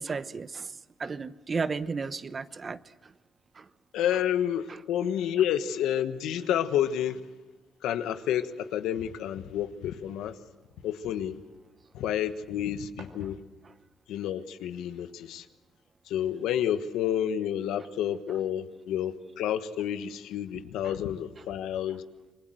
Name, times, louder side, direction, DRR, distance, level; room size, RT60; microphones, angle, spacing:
voice 1, 0.0-3.1 3.5-3.7 4.7-4.8 20.8-20.9, right 4 dB, 35° right, 14 dB, 1.0 m, -34 dB
voice 2, 3.9-7.2 7.8-10.4 10.8-11.4 11.9-13.4 14.1-15.5 16.1-22.0, left 10 dB, 85° left, 10 dB, 1.3 m, -30 dB
sound 1, 12.9-13.9, right 6 dB, 90° right, 2.8 m, -53 dB
28.0 x 21.0 x 7.8 m, 1.2 s
cardioid pair, 90°, 0 cm